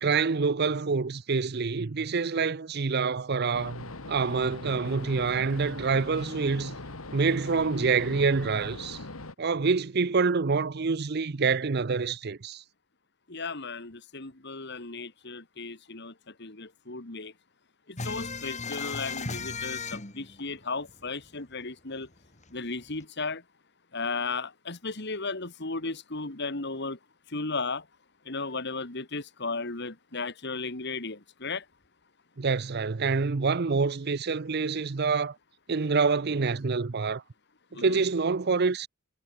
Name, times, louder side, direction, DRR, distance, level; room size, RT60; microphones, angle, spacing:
voice 1, 0.0-6.8 7.1-9.0 9.4-12.6 32.4-35.4 35.7-37.2 37.7-38.9, right 4 dB, 50° right, 0.6 m, -26 dB
sound 1, 3.5-9.3, left 2 dB, 85° left, 2.5 m, -41 dB
voice 2, 13.3-16.1 16.4-17.3 17.9-22.1 22.5-23.4 23.9-27.0 27.3-27.8 28.3-31.6 37.7-38.0, left 3 dB, 55° left, 2.3 m, -35 dB
sound 2, 18.0-21.3 21.6-21.7 22.0-23.0, left 4 dB, 35° left, 3.6 m, -36 dB
head